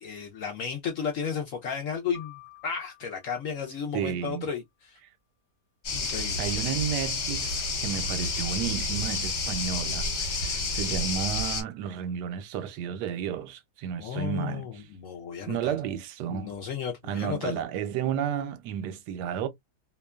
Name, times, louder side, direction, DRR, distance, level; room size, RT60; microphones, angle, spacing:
voice 1, 0.0-5.0 5.9-6.4 14.0-15.7 16.3-17.6, left 7 dB, 70° left, 0.8 m, -34 dB
sound 1, 2.1-4.3, left 16 dB, 30° left, 0.8 m, -52 dB
voice 2, 3.9-4.5 6.4-14.9 15.4-16.5 17.1-19.5, right 9 dB, 80° right, 1.2 m, -32 dB
sound 2, 5.8-11.6, left 3 dB, 50° left, 1.2 m, -30 dB
2.8 x 2.2 x 2.2 m
omnidirectional pair, 1.8 m